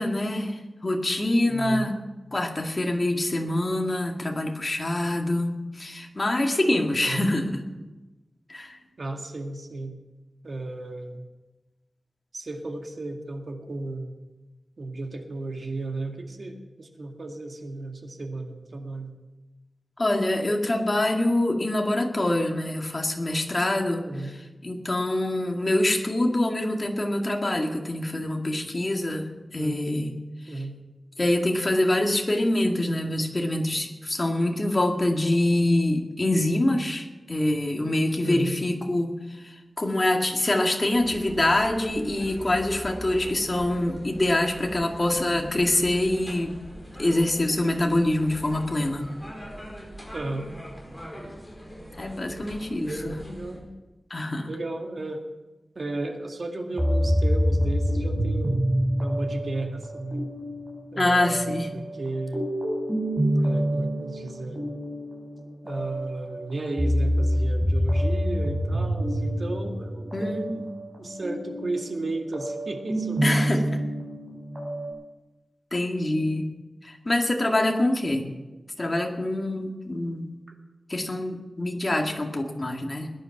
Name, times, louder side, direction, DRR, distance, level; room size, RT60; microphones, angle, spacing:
voice 1, 0.0-2.0 2.3-7.6 8.5-8.8 20.0-24.1 24.6-30.1 31.2-46.6 47.0-49.1 52.0-53.2 54.1-54.5 61.0-61.7 70.1-70.7 73.2-73.8 75.7-76.5 76.8-78.3 78.8-80.3 80.9-83.1, left 1 dB, 30° left, 2 dB, 2.1 m, -25 dB
voice 2, 1.5-1.9 7.0-7.3 9.0-10.0 10.4-11.3 12.3-14.1 14.8-19.1 24.0-24.3 29.6-30.2 30.5-30.8 38.2-38.6 50.1-50.5 52.8-53.7 54.5-55.2 55.8-58.6 59.0-60.3 60.9-62.5 63.4-64.6 65.6-70.7 71.0-73.5, right 2 dB, 50° right, 3 dB, 2.0 m, -34 dB
sound 1, 40.9-53.6, equal, 5° left, 4.6 m, -42 dB
sound 2, 56.7-74.9, equal, 20° right, 6.4 m, -27 dB
20.0 x 10.5 x 5.9 m, 1.1 s
wide cardioid pair, 110°, 0 cm